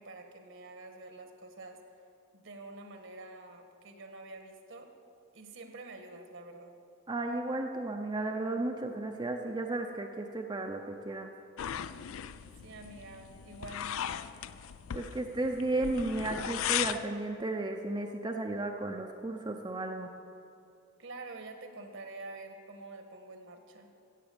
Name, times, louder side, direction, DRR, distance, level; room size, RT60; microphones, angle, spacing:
voice 1, 0.0-1.8 2.3-4.9 5.3-6.7 12.6-14.2 21.0-23.9, right 2 dB, 65° right, 5 dB, 1.4 m, -47 dB
voice 2, 7.1-11.3 14.9-20.1, right 2 dB, 20° right, 3 dB, 0.6 m, -34 dB
sound 1, 11.6-17.1, left 9 dB, 80° left, 0.4 m, -37 dB
15.0 x 8.3 x 6.9 m, 2.5 s
head